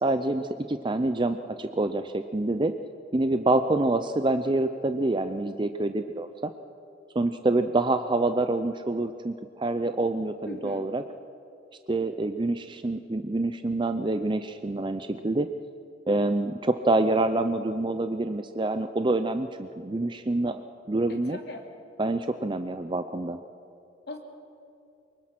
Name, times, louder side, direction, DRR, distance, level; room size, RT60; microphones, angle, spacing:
voice 1, 0.0-2.7 3.1-6.5 7.1-11.0 11.9-15.5 16.1-20.6 20.9-21.4 22.0-23.4, right 2 dB, 25° right, 9 dB, 0.6 m, -26 dB
voice 2, 10.4-10.9 21.1-21.7 24.1-24.2, left 2 dB, 60° left, 1 dB, 2.9 m, -39 dB
24.0 x 22.5 x 6.0 m, 2.7 s
head